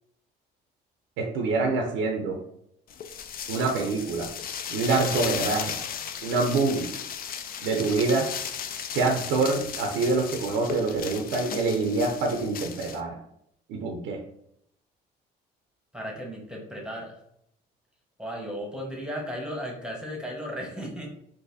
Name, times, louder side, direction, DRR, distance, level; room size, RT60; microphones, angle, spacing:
voice 1, 1.2-2.4 3.5-4.3 4.7-5.8 6.2-6.9 7.6-8.3 8.9-13.2 13.7-14.2, right 3 dB, 80° right, 2 dB, 0.5 m, -26 dB
sound 1, 2.9-13.0, left 8 dB, 45° left, 0.4 m, -36 dB
voice 2, 15.9-17.2 18.2-21.1, equal, 5° right, -2 dB, 1.1 m, -35 dB
3.9 x 2.6 x 2.6 m, 0.75 s
supercardioid pair, 70°, 20 cm